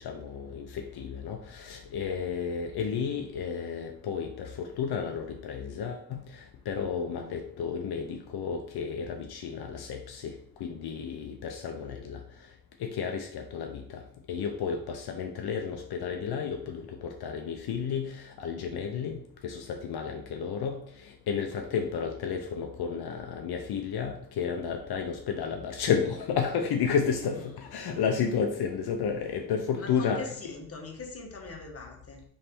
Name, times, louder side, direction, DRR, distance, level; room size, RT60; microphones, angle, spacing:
voice 1, 0.0-12.2 12.8-14.0 14.3-30.3, left 6 dB, 80° left, 3 dB, 0.6 m, -32 dB
voice 2, 29.8-32.2, left 3 dB, 40° left, 1 dB, 1.0 m, -41 dB
3.2 x 3.2 x 4.4 m, 0.68 s
cardioid pair, 90°, 38 cm